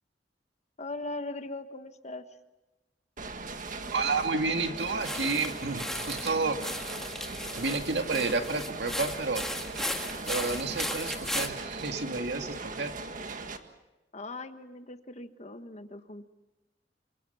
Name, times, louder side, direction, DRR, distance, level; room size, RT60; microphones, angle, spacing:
voice 1, 0.8-2.3 14.1-16.3, left 2 dB, 40° left, 9 dB, 1.4 m, -40 dB
sound 1, 3.2-13.6, right 3 dB, 50° right, 1.7 m, -39 dB
voice 2, 3.9-6.6 7.6-9.8 10.3-12.9, right 3 dB, 70° right, 5 dB, 2.1 m, -30 dB
sound 2, 4.8-11.5, left 1 dB, 5° left, 1.7 m, -36 dB
27.5 x 25.5 x 5.7 m, 1.1 s
head